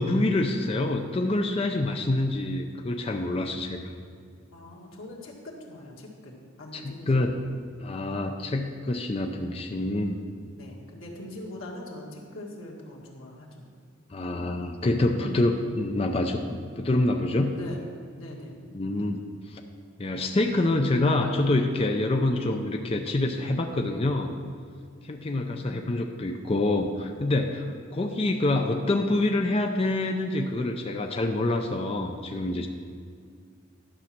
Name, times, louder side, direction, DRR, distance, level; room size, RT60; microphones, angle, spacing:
voice 1, 0.0-3.8 6.7-7.4 7.8-10.2 14.1-17.5 18.7-19.2 19.5-19.6 20.0-24.3 25.0-32.7, left 2 dB, 30° left, 4 dB, 0.5 m, -26 dB
voice 2, 4.5-6.3 6.6-7.3 10.5-13.7 17.5-17.8 18.1-18.6, left 1 dB, 90° left, -2 dB, 1.9 m, -42 dB
11.0 x 6.3 x 5.9 m, 2.1 s
head